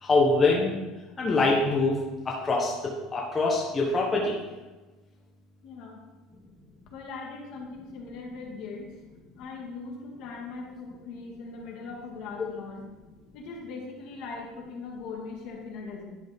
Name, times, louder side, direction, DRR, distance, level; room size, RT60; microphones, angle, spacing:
voice 1, 0.0-0.7 1.2-2.0 2.2-4.3, left 3 dB, 20° left, -3 dB, 1.0 m, -24 dB
voice 2, 5.6-6.0 6.9-8.9 9.3-12.9 13.3-16.0, left 4 dB, 60° left, 0 dB, 1.9 m, -40 dB
11.0 x 5.3 x 3.6 m, 1.2 s
cardioid pair, 150°, 0 cm